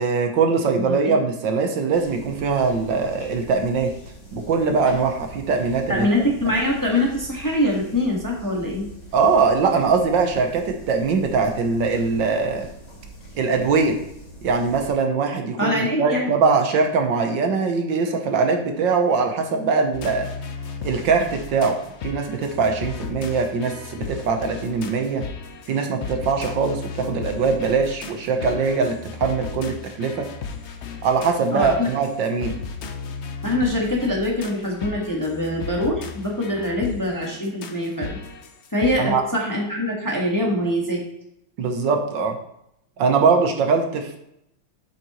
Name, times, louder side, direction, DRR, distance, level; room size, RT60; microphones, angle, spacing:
voice 1, 0.0-3.9 4.3-6.1 9.1-12.7 13.4-14.0 14.4-20.3 20.8-21.8 22.0-25.2 25.7-30.3 31.0-32.6 39.0-39.2 41.6-42.4 43.0-44.2, right 4 dB, 70° right, 4 dB, 1.6 m, -22 dB
voice 2, 0.7-1.1 5.9-8.9 15.6-16.3 31.5-31.9 33.4-38.2 38.7-41.0, left 1 dB, 10° left, -2 dB, 1.3 m, -23 dB
sound 1, 1.9-14.9, right 1 dB, 30° left, 2.0 m, -43 dB
sound 2, 19.9-38.9, left 5 dB, 80° left, 0.6 m, -35 dB
7.8 x 7.6 x 3.0 m, 0.78 s
omnidirectional pair, 2.1 m